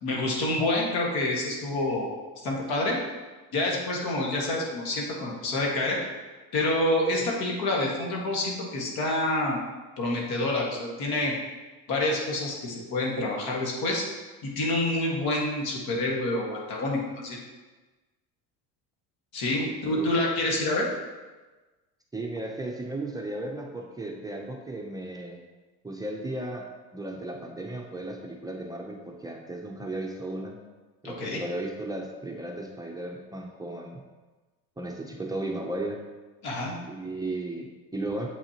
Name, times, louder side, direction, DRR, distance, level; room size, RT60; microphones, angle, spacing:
voice 1, 0.0-3.0 3.5-6.0 6.5-9.6 10.0-11.3 11.9-14.1 14.4-17.4 19.3-20.9 31.0-31.4 36.4-36.8, left 2 dB, 70° left, -2 dB, 1.8 m, -27 dB
voice 2, 19.6-20.1 22.1-25.4 25.8-26.7 26.9-30.6 31.0-34.0 34.8-36.0 36.9-38.3, right 2 dB, 10° right, 0 dB, 0.6 m, -35 dB
7.7 x 5.4 x 2.9 m, 1.2 s
supercardioid pair, 105°, 38 cm